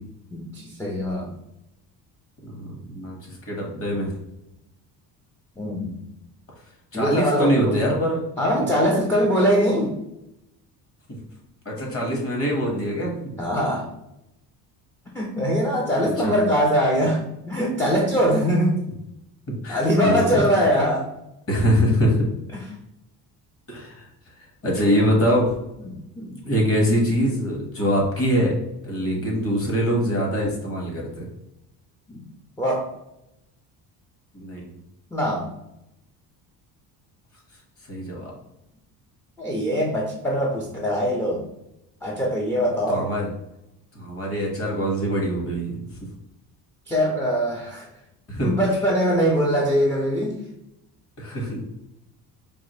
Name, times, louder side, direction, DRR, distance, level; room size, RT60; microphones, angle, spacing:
voice 1, 0.3-1.3 5.6-6.0 6.9-7.8 8.4-10.0 13.4-13.9 15.1-18.8 19.7-21.1 22.5-22.6 25.8-26.3 29.0-29.2 32.1-32.2 32.6-32.8 35.1-35.5 39.4-41.4 42.0-43.1 46.9-47.9 48.4-50.4, equal, 5° left, -2 dB, 0.3 m, -22 dB
voice 2, 2.4-3.2 3.5-4.1 6.9-8.2 11.1-11.2 11.6-13.1 16.2-16.3 19.5-20.4 21.5-22.3 23.7-24.1 24.6-25.5 26.4-28.5 28.8-31.2 34.3-34.7 37.9-38.3 42.9-43.3 43.9-45.8 48.3-48.5 51.2-51.6, equal, 35° left, -1 dB, 1.4 m, -23 dB
4.7 x 2.5 x 3.0 m, 0.87 s
cardioid pair, 145°, 39 cm